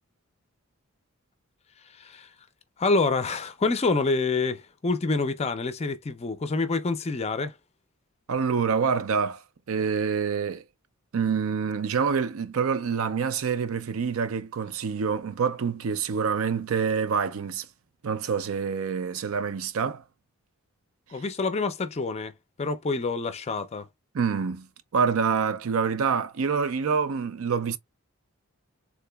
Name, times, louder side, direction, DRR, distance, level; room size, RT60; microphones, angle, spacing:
voice 1, 1.8-2.3 2.8-7.6 21.1-22.3 22.6-23.9, left 3 dB, 30° left, 0.4 m, -27 dB
voice 2, 8.3-10.6 11.1-17.7 18.0-20.0 24.1-24.7 24.9-27.8, right 6 dB, 70° right, 0.5 m, -26 dB
3.7 x 2.8 x 2.2 m
head